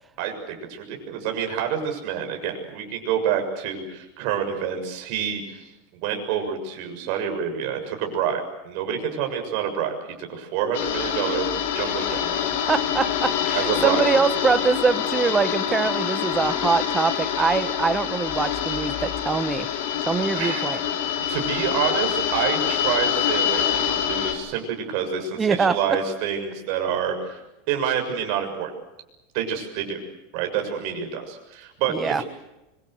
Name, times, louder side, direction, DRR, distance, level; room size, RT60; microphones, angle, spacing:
voice 1, 0.2-5.6 6.0-10.0 10.3-11.5 11.7-12.2 13.5-14.0 20.3-20.7 21.3-27.4 27.7-28.7 29.3-30.0 30.3-32.2, right 8 dB, 50° right, 4 dB, 6.8 m, -27 dB
sound 1, 10.7-24.3, left 9 dB, 65° left, 5.3 m, -25 dB
voice 2, 12.7-19.7 20.1-20.8 25.3-26.0 31.9-32.2, right 5 dB, 15° right, 12 dB, 1.1 m, -23 dB
25.5 x 24.5 x 8.0 m, 0.96 s
supercardioid pair, 155°, 0 cm